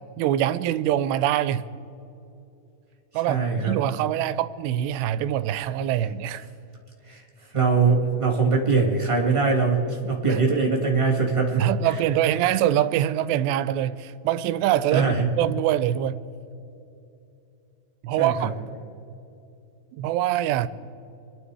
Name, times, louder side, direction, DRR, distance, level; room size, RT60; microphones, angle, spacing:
voice 1, 0.2-1.7 3.1-6.4 10.3-10.4 11.6-16.2 18.0-18.5 20.0-20.7, right 12 dB, 85° right, 2.8 m, -24 dB
voice 2, 3.2-3.7 7.1-7.2 7.5-12.0 14.9-15.3 18.2-18.5, right 4 dB, 20° right, 0.7 m, -22 dB
26.0 x 11.0 x 4.8 m
omnidirectional pair, 4.8 m